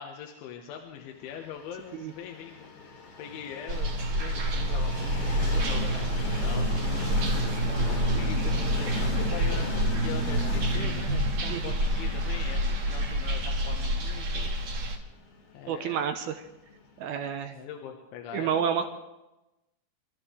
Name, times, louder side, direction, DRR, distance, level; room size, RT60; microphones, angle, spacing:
voice 1, 0.0-2.9 3.2-6.7 7.9-14.6 15.5-16.0 17.5-18.9, left 8 dB, 80° left, 2 dB, 3.7 m, -42 dB
Train, 1.4-17.2, left 3 dB, 50° left, 3.0 m, -39 dB
sound 1, 3.7-15.0, equal, 45° right, 2.7 m, -27 dB
voice 2, 15.7-16.4 17.0-17.6 18.3-18.9, right 8 dB, 80° right, 7 dB, 2.3 m, -29 dB
29.0 x 13.5 x 3.3 m, 0.97 s
omnidirectional pair, 5.4 m